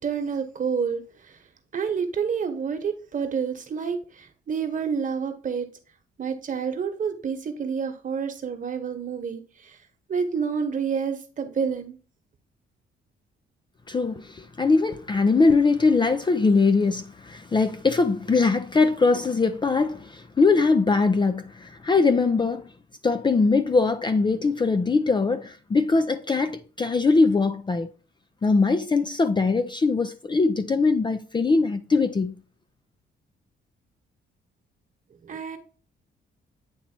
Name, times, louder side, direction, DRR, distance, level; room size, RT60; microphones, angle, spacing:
voice 1, 0.0-1.4 1.7-5.7 6.2-9.8 10.1-11.9 35.2-35.6, right 6 dB, 40° right, 1.2 m, -29 dB
voice 2, 13.9-22.7 23.0-27.9 28.4-32.3, left 4 dB, 25° left, 0.5 m, -21 dB
8.8 x 2.9 x 4.4 m
cardioid pair, 90°, 20 cm